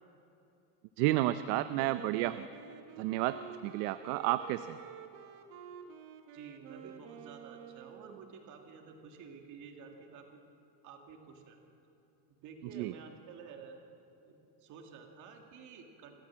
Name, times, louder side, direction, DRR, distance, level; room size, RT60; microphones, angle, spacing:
voice 1, 1.0-2.5 3.0-4.8 12.6-12.9, right 15 dB, 85° right, 12 dB, 0.7 m, -31 dB
Wind instrument woodwind instrument, 1.7-8.4, right 8 dB, 60° right, 1.6 m, -50 dB
voice 2, 6.3-10.3 10.8-11.6 12.4-13.8 14.3-16.1, right 5 dB, 40° right, 3 dB, 2.3 m, -51 dB
27.0 x 13.0 x 7.4 m, 3.0 s
cardioid pair, 175°, 46 cm